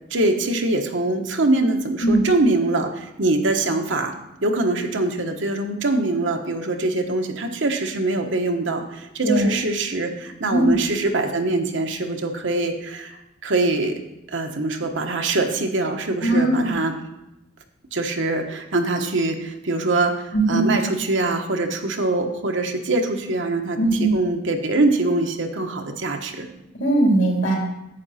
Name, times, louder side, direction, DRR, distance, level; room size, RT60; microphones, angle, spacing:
voice 1, 0.1-4.1 4.4-14.0 14.3-16.9 17.9-26.5, right 2 dB, 70° right, 4 dB, 1.1 m, -23 dB
voice 2, 16.2-16.7 20.3-20.7 23.8-24.2 26.7-27.5, right 1 dB, 70° left, -2 dB, 3.4 m, -19 dB
10.5 x 8.4 x 4.2 m, 0.91 s
head